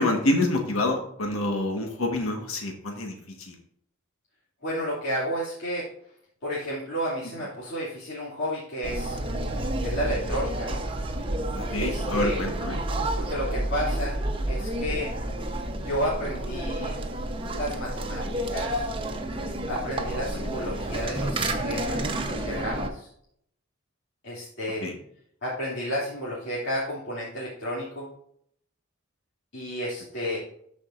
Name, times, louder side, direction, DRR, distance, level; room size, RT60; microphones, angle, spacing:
voice 1, 0.0-3.5 11.5-12.8 24.8-25.0, left 1 dB, 85° left, 3 dB, 1.5 m, -27 dB
voice 2, 4.6-5.8 6.4-9.2 9.8-10.8 11.8-12.4 13.2-14.2 14.5-15.1 15.8-16.9 17.5-18.2 18.5-18.9 19.6-23.1 24.2-24.9 25.4-28.1 29.5-30.4, equal, 55° left, -8 dB, 2.8 m, -31 dB
sound 1, 8.8-22.9, right 1 dB, 25° right, 0.9 m, -30 dB
13.5 x 5.2 x 2.6 m, 0.68 s
head